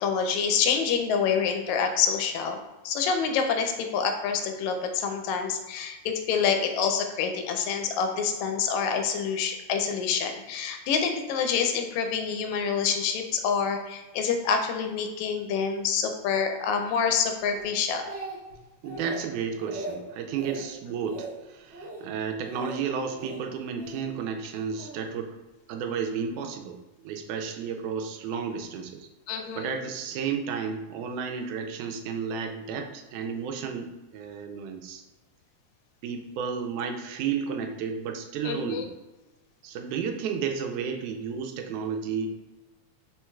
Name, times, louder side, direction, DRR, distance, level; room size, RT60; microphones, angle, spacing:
voice 1, 0.0-2.6 2.8-18.0 29.3-29.7 38.4-38.8, left 6 dB, 80° left, 5 dB, 1.7 m, -27 dB
Speech, 17.6-18.6 18.8-19.2 19.6-20.0 20.3-20.6 21.0-21.3 21.7-22.0 22.4-22.8 23.2-24.0 24.8-25.0, right 2 dB, 55° right, 1.4 m, -38 dB
voice 2, 18.8-25.3 25.7-29.1 29.6-35.0 36.0-38.9 39.6-42.3, right 6 dB, 80° right, 5 dB, 2.0 m, -32 dB
4.5 x 4.4 x 2.3 m, 1.1 s
omnidirectional pair, 3.6 m